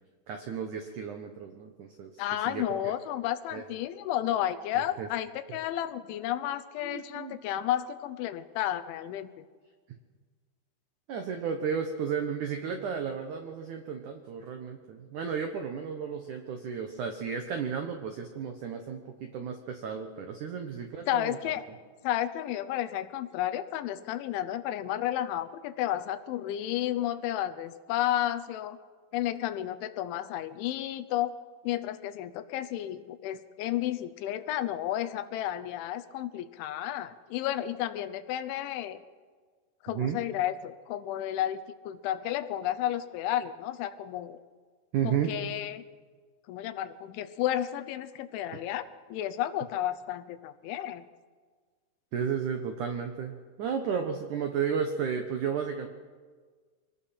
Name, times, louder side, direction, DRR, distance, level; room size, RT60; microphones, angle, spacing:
voice 1, 0.3-2.8 3.5-3.6 5.0-5.1 5.5-5.6 6.8-7.4 11.1-21.4 39.9-40.2 44.9-45.3 48.5-48.6 52.1-55.9, right 7 dB, 90° right, 5 dB, 1.7 m, -33 dB
voice 2, 2.2-9.3 21.1-21.7 22.0-28.8 29.1-31.4 31.6-39.0 39.8-44.4 45.0-45.8 46.5-51.1, left 12 dB, 85° left, 10 dB, 3.3 m, -32 dB
25.0 x 19.0 x 5.8 m, 1.5 s
omnidirectional pair, 5.4 m